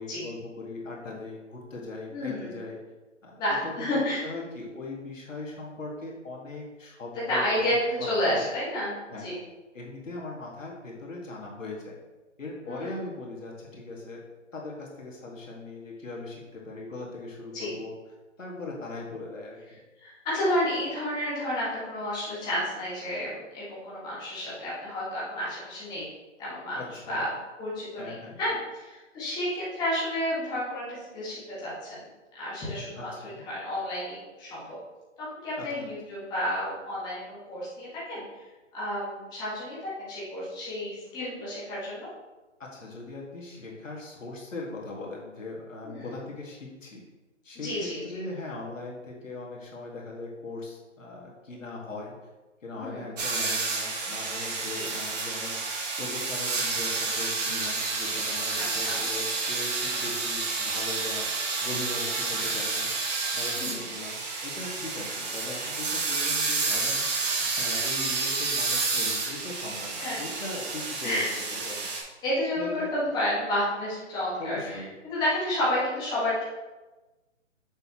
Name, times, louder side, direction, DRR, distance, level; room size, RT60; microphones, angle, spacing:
voice 1, 0.0-2.8 3.2-3.7 4.2-7.8 8.2-8.5 9.1-9.3 9.7-12.0 12.4-14.2 14.5-17.9 18.4-19.8 26.7-27.2 28.0-28.4 33.0-33.4 35.6-35.9 42.6-47.0 47.4-52.1 52.6-62.9 63.3-71.2 71.5-71.9 72.5-72.9 74.4-74.9, left 2 dB, 80° left, -2 dB, 2.0 m, -39 dB
voice 2, 2.1-2.6 3.4-4.2 7.3-9.4 12.6-12.9 17.5-17.7 20.0-26.1 26.4-26.8 27.1-27.3 27.6-32.0 32.3-34.8 35.2-38.2 38.7-42.1 45.8-46.0 47.5-48.0 52.7-53.1 54.7-54.9 58.7-59.1 63.6-63.8 70.0-70.3 71.0-71.3 72.2-76.4, left 1 dB, 10° left, -9 dB, 1.6 m, -31 dB
sound 1, 53.2-72.0, right 3 dB, 35° right, 1.1 m, -30 dB
6.7 x 5.6 x 3.1 m, 1.1 s
figure-of-eight pair, 150°, 38 cm